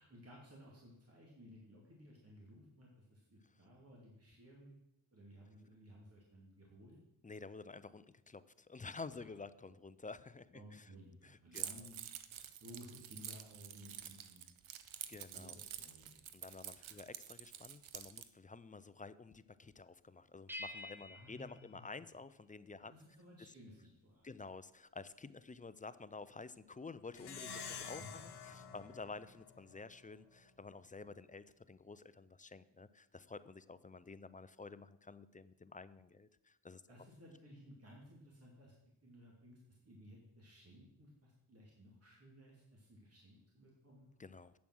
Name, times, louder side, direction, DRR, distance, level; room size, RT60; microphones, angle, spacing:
voice 1, 0.0-4.8 5.1-7.0 9.1-9.4 10.5-12.0 12.6-14.4 15.3-16.3 16.8-16.9 21.1-22.0 22.9-24.4 27.7-28.1 28.4-28.7 36.9-38.7 39.0-44.1, equal, 30° right, -3 dB, 2.6 m, -58 dB
voice 2, 7.2-10.9 11.2-11.7 12.4-12.6 15.1-15.6 16.3-22.9 24.2-36.8 44.2-44.5, left 4 dB, 20° left, 15 dB, 0.4 m, -51 dB
Keys jangling, 11.5-18.3, right 10 dB, 80° right, 0.8 m, -48 dB
sound 1, 20.5-22.7, left 2 dB, 5° right, 0.8 m, -50 dB
Plucked string instrument, 27.1-30.0, left 6 dB, 55° left, 1.3 m, -49 dB
8.6 x 7.1 x 6.3 m, 0.85 s
cardioid pair, 75°, 48 cm